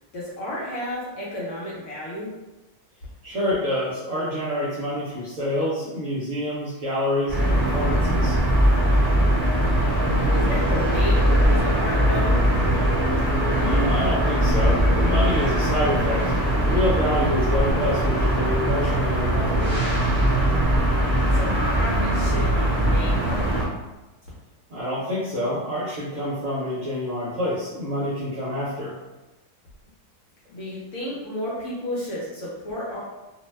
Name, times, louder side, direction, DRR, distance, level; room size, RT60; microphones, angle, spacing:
voice 1, 0.1-2.3 10.3-12.4 21.3-23.5 30.5-33.0, left 1 dB, 60° left, -6 dB, 0.9 m, -32 dB
voice 2, 3.2-8.3 13.6-16.2 16.6-19.8 24.7-29.0, left 1 dB, 65° right, -8 dB, 0.9 m, -27 dB
sound 1, 7.3-23.6, right 1 dB, 15° left, 0.9 m, -21 dB
2.7 x 2.1 x 3.1 m, 1.1 s
omnidirectional pair, 1.6 m